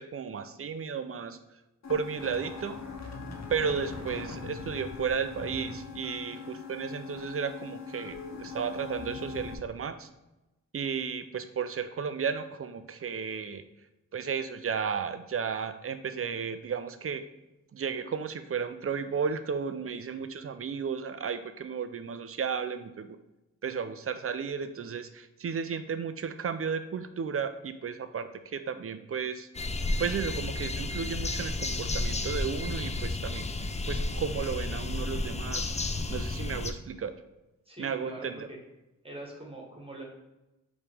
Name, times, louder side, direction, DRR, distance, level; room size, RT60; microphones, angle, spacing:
voice 1, 0.0-1.4 1.9-2.8 3.5-10.1 10.7-13.6 14.1-17.2 17.7-23.2 23.6-29.5 30.0-33.5 33.9-37.1 37.8-38.5, right 6 dB, 45° right, 10 dB, 0.5 m, -33 dB
sound 1, 1.8-9.5, left 4 dB, 50° left, 0.8 m, -41 dB
sound 2, 29.5-36.7, left 2 dB, 20° left, 0.4 m, -32 dB
voice 2, 37.6-38.6 39.0-40.0, right 2 dB, 15° right, -2 dB, 1.5 m, -43 dB
4.7 x 3.2 x 3.4 m, 0.98 s
cardioid pair, 45°, 34 cm